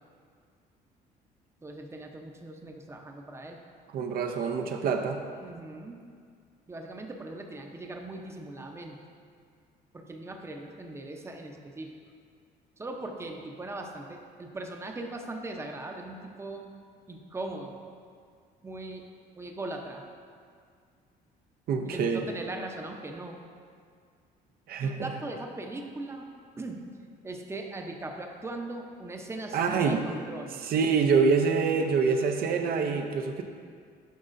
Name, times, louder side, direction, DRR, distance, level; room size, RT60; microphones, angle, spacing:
voice 1, 1.6-3.6 5.4-6.0 6.7-9.0 9.9-11.9 12.8-16.7 17.1-17.8 18.6-19.1 19.3-20.0 21.8-23.4 24.8-26.3 26.6-26.8 27.2-30.6, right 2 dB, 15° right, 2 dB, 0.7 m, -39 dB
voice 2, 3.9-5.2 21.7-22.3 24.7-25.1 29.5-30.0 30.6-33.4, right 5 dB, 65° right, 4 dB, 0.6 m, -26 dB
10.5 x 5.4 x 2.6 m, 2.1 s
cardioid pair, 110°, 17 cm